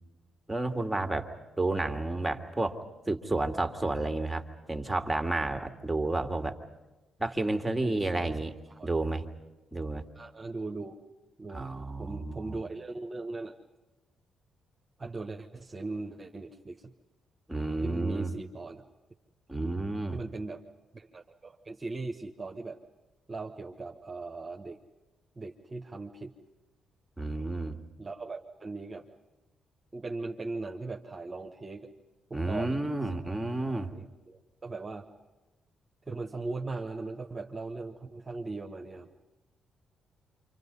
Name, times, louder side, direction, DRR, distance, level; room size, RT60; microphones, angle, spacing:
voice 1, 0.5-1.3 1.6-6.6 7.2-8.5 8.8-9.3 9.7-10.0 11.5-12.6 17.5-18.3 19.5-20.2 27.2-27.8 32.3-33.9, right 2 dB, 10° right, 5 dB, 2.6 m, -31 dB
voice 2, 7.8-8.4 8.7-8.9 10.1-11.0 11.4-11.7 12.0-13.5 15.0-16.9 17.8-18.8 19.6-19.7 20.1-20.6 20.9-22.8 23.3-24.8 25.4-26.3 28.0-29.1 29.9-31.9 32.3-32.8 33.8-35.0 36.1-39.1, right 3 dB, 30° right, 2 dB, 1.6 m, -39 dB
28.0 x 26.0 x 5.6 m, 1.1 s
hypercardioid pair, 40°, 0 cm